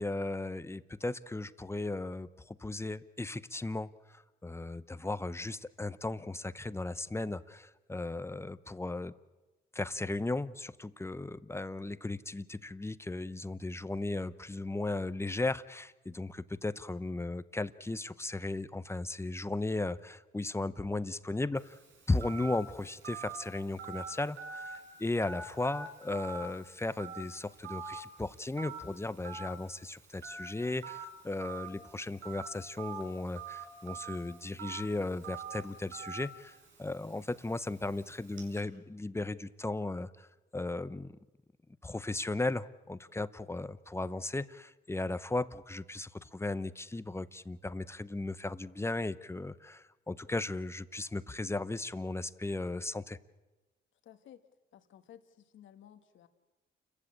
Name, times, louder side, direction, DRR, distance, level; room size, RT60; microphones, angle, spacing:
voice 1, 0.0-9.1 9.7-21.8 22.1-40.3 40.5-41.2 41.8-53.2, left 2 dB, 15° left, 15 dB, 0.8 m, -36 dB
Telephone, 21.6-38.6, right 4 dB, 75° right, 5.5 m, -46 dB
voice 2, 54.0-54.4 54.7-56.3, left 10 dB, 75° left, 8 dB, 1.4 m, -55 dB
29.0 x 15.0 x 8.7 m, 1.1 s
cardioid pair, 90°, 20 cm